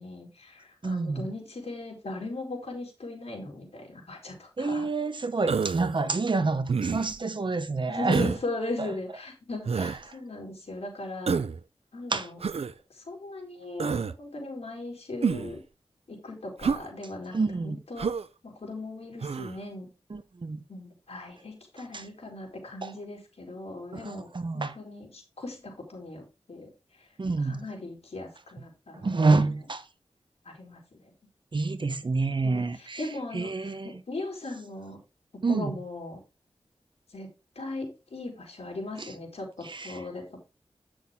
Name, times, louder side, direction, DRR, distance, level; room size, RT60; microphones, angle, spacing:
voice 1, 0.0-4.9 7.9-11.4 11.9-12.4 12.9-15.6 16.1-17.4 17.6-18.1 18.4-19.9 20.7-26.7 27.0-27.1 27.4-29.5 30.5-31.1 32.4-35.0 35.3-36.2 37.1-37.3 37.6-40.4, left 2 dB, 75° left, 3.5 m, -38 dB
voice 2, 0.8-1.3 4.6-8.3 8.8-8.9 9.8-10.2 12.1-12.3 17.3-17.8 20.1-20.6 21.9-22.0 22.8-22.9 23.9-24.8 27.2-27.6 29.0-29.8 31.5-33.1 33.3-34.0 35.4-35.8 39.0-39.1 39.6-40.0, right 3 dB, 50° right, 0.8 m, -28 dB
Human voice, 5.5-6.0 6.7-7.2 8.1-8.4 9.7-10.0 11.3-11.6 12.4-12.7 13.8-14.1 15.2-15.6 16.6-16.9 18.0-18.3 19.2-19.5, right 5 dB, 75° right, 0.5 m, -28 dB
9.1 x 6.2 x 3.6 m
wide cardioid pair, 95°, 11 cm